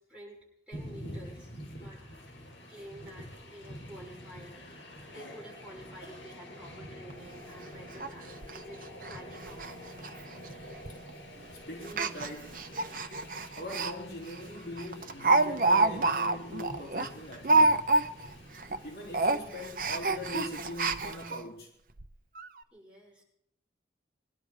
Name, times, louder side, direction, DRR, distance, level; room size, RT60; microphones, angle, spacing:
Train, 0.7-20.7, equal, 80° left, 6.4 m, -47 dB
voice 1, 0.7-2.0 2.7-4.6 5.1-9.8 22.7-23.2, equal, 5° right, 6.5 m, -50 dB
Speech, 7.1-7.2 7.5-7.6 8.0-8.1 8.4-8.6 9.0-9.2 9.4-9.7 10.0-10.1 10.9-11.1 11.8-13.9 14.3-14.4 14.8-18.3 18.6-18.8 19.1-21.4 22.0-22.1 22.4-22.5, right 2 dB, 50° right, 0.8 m, -27 dB
voice 2, 11.7-12.6 13.6-17.9 18.8-21.7, left 1 dB, 55° left, 3.1 m, -42 dB
22.5 x 11.5 x 4.9 m
head